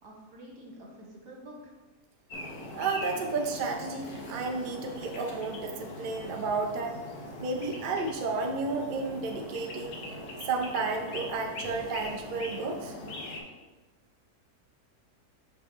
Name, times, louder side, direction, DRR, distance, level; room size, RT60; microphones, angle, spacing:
voice 1, 0.0-1.8, right 1 dB, 80° right, -3 dB, 2.0 m, -48 dB
sound 1, 2.3-13.4, left 1 dB, 75° left, 1.4 m, -41 dB
voice 2, 2.7-7.0 7.4-10.0 10.5-12.9, right 4 dB, 50° right, 2 dB, 0.6 m, -32 dB
6.2 x 5.7 x 2.9 m, 1.2 s
omnidirectional pair, 1.7 m